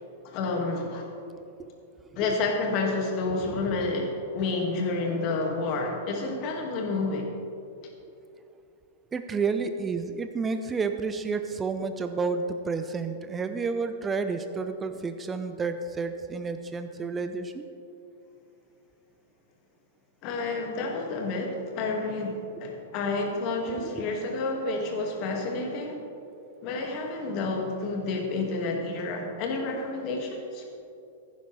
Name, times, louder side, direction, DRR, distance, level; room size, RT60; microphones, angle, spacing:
voice 1, 0.2-1.1 2.2-7.3 20.2-26.0 26.6-30.6, left 3 dB, 40° left, 1 dB, 2.1 m, -29 dB
voice 2, 9.1-17.6 23.8-24.1, right 4 dB, 15° right, 8 dB, 0.6 m, -30 dB
15.5 x 10.5 x 3.4 m, 2.7 s
figure-of-eight pair, 100°, 0 cm